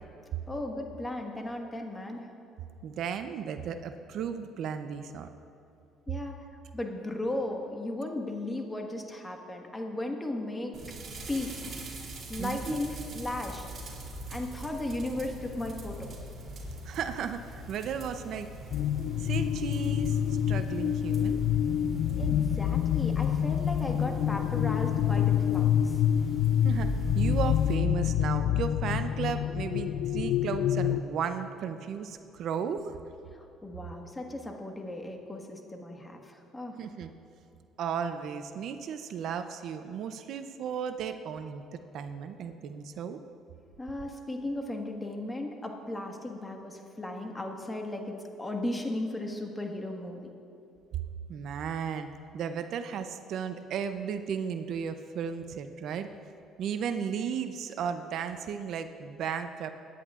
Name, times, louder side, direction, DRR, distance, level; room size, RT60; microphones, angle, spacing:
voice 1, 0.5-2.3 6.1-6.4 6.7-10.7 11.2-11.6 12.3-13.6 14.3-16.0 22.2-26.0 33.4-36.8 43.8-50.3, left 1 dB, 15° left, 2 dB, 1.5 m, -36 dB
voice 2, 2.8-5.3 12.4-12.8 16.8-18.5 19.2-21.4 26.6-32.9 36.8-37.1 37.8-41.6 41.9-43.2 51.3-56.1 56.6-59.7, right 7 dB, 65° right, 9 dB, 0.6 m, -35 dB
sound 1, 10.7-27.7, right 1 dB, 45° right, 3.0 m, -41 dB
sound 2, 18.7-31.0, left 10 dB, 75° left, 0.3 m, -27 dB
23.5 x 10.0 x 2.5 m, 2.7 s
cardioid pair, 90°, 0 cm